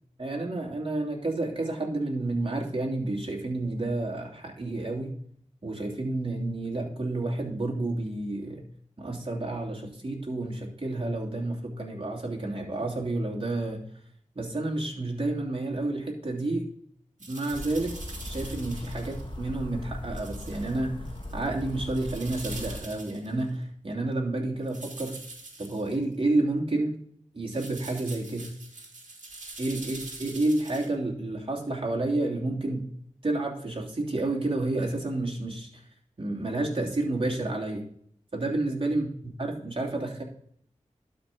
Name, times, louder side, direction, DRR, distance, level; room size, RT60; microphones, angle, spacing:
voice 1, 0.2-5.2 5.6-8.7 9.0-13.8 14.3-16.7 17.3-17.9 18.2-21.1 21.3-25.2 25.6-27.0 27.3-28.5 29.6-32.9 33.2-35.8 36.2-37.8 38.3-40.2, right 2 dB, 45° right, -1 dB, 3.0 m, -30 dB
sound 1, 17.2-19.3 20.2-20.8 21.1-23.4 24.7-26.0 27.5-30.9, right 3 dB, 70° right, 2.3 m, -44 dB
sound 2, 17.5-22.8, left 1 dB, 40° left, 1.8 m, -39 dB
12.0 x 5.4 x 3.8 m, 0.64 s
cardioid pair, 40°, 13 cm